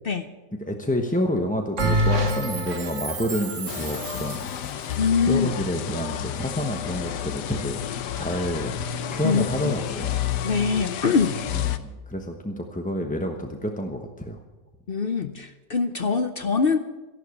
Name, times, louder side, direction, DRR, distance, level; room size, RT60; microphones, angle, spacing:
voice 1, 0.6-4.4 5.3-7.8 8.2-8.7 9.1-10.2 11.5-14.4, left 1 dB, 5° left, 3 dB, 0.7 m, -28 dB
Bell, 1.8-4.6, right 1 dB, 50° right, 1.8 m, -26 dB
sound 1, 3.7-11.8, left 9 dB, 85° left, 1.4 m, -31 dB
voice 2, 5.0-5.5 9.2-9.7 10.4-11.4 14.9-16.8, left 5 dB, 50° left, 9 dB, 0.7 m, -23 dB
14.0 x 11.5 x 7.1 m, 1.2 s
omnidirectional pair, 1.8 m